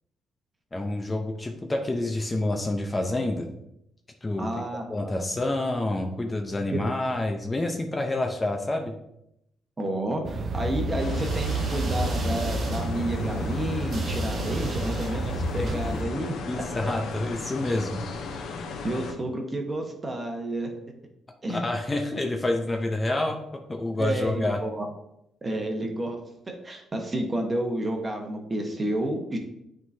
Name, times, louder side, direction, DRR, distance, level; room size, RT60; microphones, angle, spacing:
voice 1, 0.7-3.5 4.2-4.5 4.9-8.9 15.6-15.7 16.5-18.0 21.5-24.6, left 2 dB, 20° left, 3 dB, 0.7 m, -28 dB
voice 2, 4.4-5.1 6.7-6.8 9.8-16.3 16.8-16.9 18.8-20.7 21.4-21.6 24.0-24.9 25.4-26.2 26.5-29.4, right 1 dB, 25° right, 3 dB, 1.2 m, -30 dB
sound 1, 10.2-16.0, right 2 dB, 50° right, 0.7 m, -29 dB
sound 2, 11.0-19.1, left 4 dB, 75° left, 0.8 m, -36 dB
9.1 x 3.8 x 2.8 m, 0.81 s
cardioid pair, 90°, 0 cm